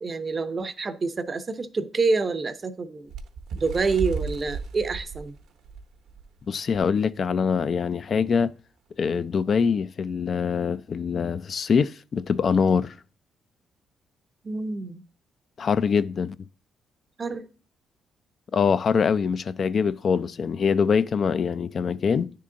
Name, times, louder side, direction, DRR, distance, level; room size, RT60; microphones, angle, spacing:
voice 1, 0.0-3.1 3.5-5.3 14.4-15.0 17.2-17.5, right 4 dB, 35° right, 0.6 m, -27 dB
Bird, 3.1-6.3 6.7-6.9 7.2-7.4 8.2-8.3, right 5 dB, 80° right, 0.9 m, -34 dB
voice 2, 6.5-8.5 9.0-12.9 15.6-16.4 18.5-22.3, left 6 dB, 50° left, 0.3 m, -24 dB
9.4 x 3.7 x 3.7 m
cardioid pair, 90°, 0 cm